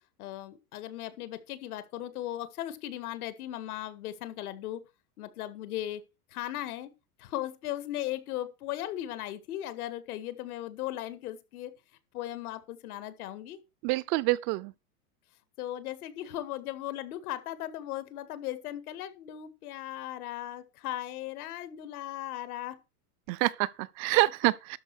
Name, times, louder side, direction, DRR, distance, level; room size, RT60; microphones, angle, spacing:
voice 1, 0.2-4.8 5.2-6.0 6.3-6.9 7.2-11.7 12.1-13.6 15.6-22.8, left 13 dB, 70° left, 2.0 m, -37 dB
voice 2, 13.8-14.7 23.3-24.8, right 21 dB, 40° right, 0.6 m, -27 dB
12.5 x 5.3 x 6.2 m
supercardioid pair, 140°, 45 cm